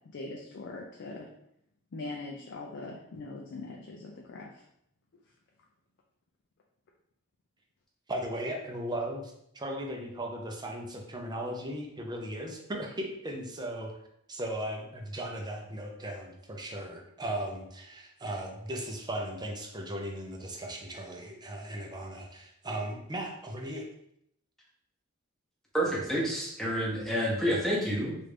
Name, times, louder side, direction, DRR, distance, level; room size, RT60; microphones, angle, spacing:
voice 1, 0.1-1.3 1.9-4.6, left 2 dB, 60° left, 0 dB, 0.4 m, -41 dB
voice 2, 8.1-13.9 14.3-23.9, right 1 dB, 20° right, 1 dB, 0.5 m, -37 dB
voice 3, 25.7-28.3, equal, ahead, -5 dB, 0.8 m, -29 dB
3.2 x 2.5 x 3.3 m, 0.74 s
head